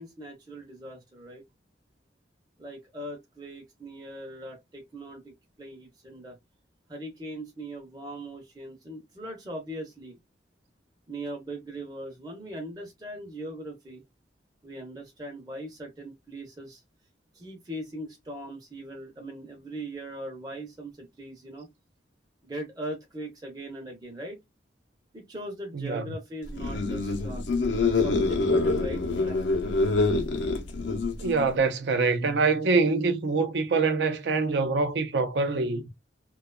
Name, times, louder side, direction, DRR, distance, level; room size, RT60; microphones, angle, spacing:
voice 1, 0.0-1.4 2.6-6.4 6.9-10.2 11.1-14.0 14.6-16.8 17.3-21.7 22.4-24.4 25.1-27.4 27.9-29.5, right 1 dB, 20° right, 0.6 m, -40 dB
voice 2, 25.8-26.1 31.2-35.8, right 4 dB, 75° right, 0.5 m, -25 dB
sound 1, 26.5-31.6, left 3 dB, 85° left, 0.6 m, -26 dB
2.8 x 2.2 x 2.2 m
head